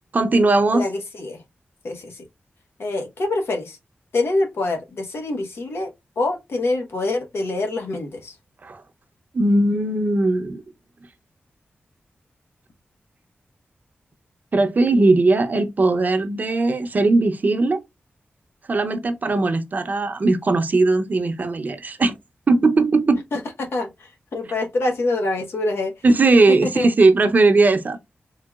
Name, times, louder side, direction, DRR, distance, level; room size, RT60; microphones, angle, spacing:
voice 1, 0.1-0.8 8.6-8.8 9.3-10.6 14.5-17.8 18.7-22.1 22.5-23.2 26.0-28.0, right 3 dB, 45° right, 0.6 m, -18 dB
voice 2, 0.7-1.4 1.8-2.2 2.8-3.8 4.1-5.9 6.2-8.3 23.3-25.9 26.5-26.9, left 2 dB, 85° left, 1.1 m, -25 dB
3.8 x 3.4 x 2.3 m
wide cardioid pair, 120°, 4 cm